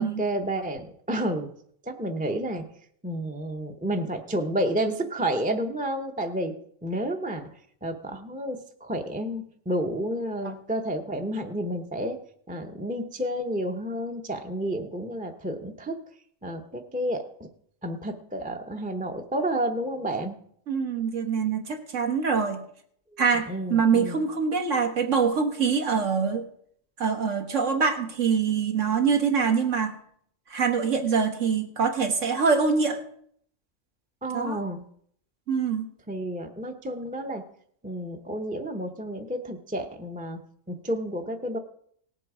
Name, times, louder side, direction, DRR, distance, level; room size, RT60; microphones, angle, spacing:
voice 1, 0.0-1.5 1.8-2.6 3.0-6.5 6.8-7.4 7.8-12.2 12.5-16.0 16.4-17.5 17.8-20.4 23.3-24.2 34.2-34.8 36.1-37.4 37.8-40.4 40.7-41.6, right 1 dB, 10° right, 3 dB, 0.7 m, -30 dB
voice 2, 20.7-22.6 23.2-26.4 27.0-30.0 30.5-33.0 34.3-34.6 35.5-35.9, right 5 dB, 70° right, 5 dB, 1.8 m, -24 dB
18.0 x 7.7 x 4.9 m, 0.65 s
omnidirectional pair, 1.3 m